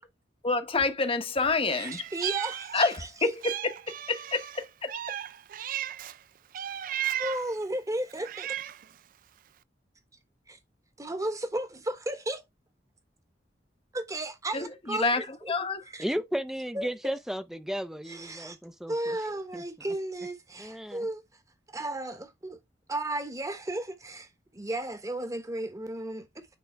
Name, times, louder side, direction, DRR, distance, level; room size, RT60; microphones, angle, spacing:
voice 1, 0.4-2.0 2.7-2.9 3.2-3.7 4.1-4.9 14.5-15.8, left 3 dB, 30° left, 1.0 m, -27 dB
Meow, 1.7-3.1 3.4-6.2 6.5-7.5 8.1-8.9, right 11 dB, 50° right, 0.4 m, -35 dB
voice 2, 1.8-3.3 7.2-8.5 10.5-10.6 11.0-12.4 13.9-15.5 15.9-16.0 16.7-17.2 18.1-18.6 18.9-21.2 21.7-22.6 22.9-26.5, right 1 dB, 20° right, 1.2 m, -34 dB
voice 3, 16.0-19.6 20.6-21.1, equal, ahead, 0.6 m, -34 dB
9.5 x 3.5 x 3.4 m
head